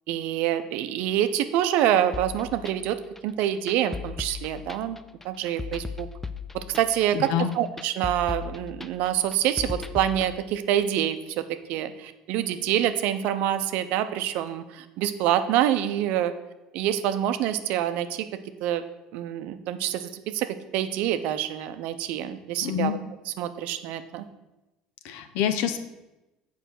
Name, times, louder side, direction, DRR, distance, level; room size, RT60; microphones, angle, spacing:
voice 1, 0.1-3.0 3.2-5.0 5.2-6.1 6.5-11.4 11.7-16.3 16.7-18.3 18.6-18.8 19.1-23.0 23.4-24.3, right 11 dB, 70° right, 10 dB, 0.6 m, -26 dB
sound 1, 2.1-10.3, left 5 dB, 10° left, 0.5 m, -37 dB
voice 2, 7.1-7.5 22.6-22.9 25.0-25.8, left 9 dB, 75° left, 9 dB, 0.8 m, -26 dB
6.9 x 4.9 x 6.3 m, 1.0 s
supercardioid pair, 90°, 3 cm